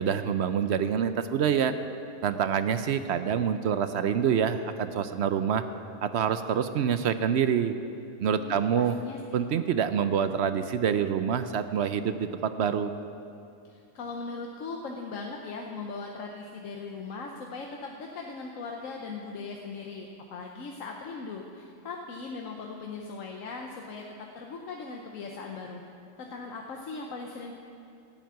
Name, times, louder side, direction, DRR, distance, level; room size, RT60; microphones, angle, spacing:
voice 1, 0.0-1.7 2.2-5.6 6.0-7.8 8.2-8.9 9.3-12.9, right 8 dB, 65° right, 10 dB, 0.8 m, -26 dB
voice 2, 8.4-9.2 13.6-24.0 24.3-25.8 26.2-27.5, left 4 dB, 85° left, 1 dB, 1.3 m, -39 dB
12.5 x 7.5 x 9.2 m, 2.6 s
omnidirectional pair, 1.3 m